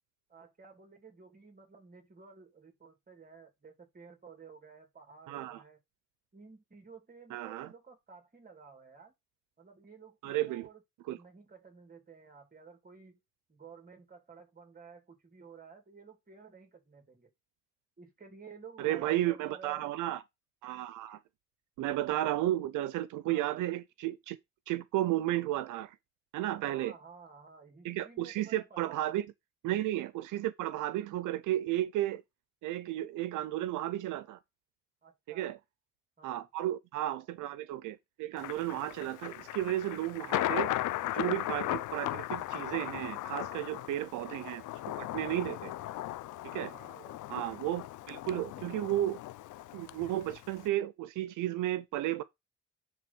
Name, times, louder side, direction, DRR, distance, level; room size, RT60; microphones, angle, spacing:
voice 1, 0.3-5.8 6.3-9.1 9.6-10.8 11.1-13.2 13.5-17.3 18.0-19.9 23.2-23.5 26.7-29.1 35.0-35.5 36.2-36.4 43.7-44.0 46.7-47.2, right 5 dB, 30° right, 3.1 m, -53 dB
voice 2, 5.3-5.6 7.3-7.7 10.2-10.7 11.1-11.2 18.8-20.2 20.6-21.2 21.8-24.4 24.7-26.0 26.3-26.9 27.8-29.3 29.6-32.2 32.6-34.4 35.3-35.6 36.2-40.7 41.1-44.6 45.0-45.7 46.4-46.7 47.3-49.2 49.7-52.2, right 14 dB, 85° right, 0.6 m, -33 dB
Thunder, 38.4-50.7, left 15 dB, 80° left, 0.7 m, -37 dB
10.0 x 3.4 x 6.0 m
cardioid pair, 90°, 30 cm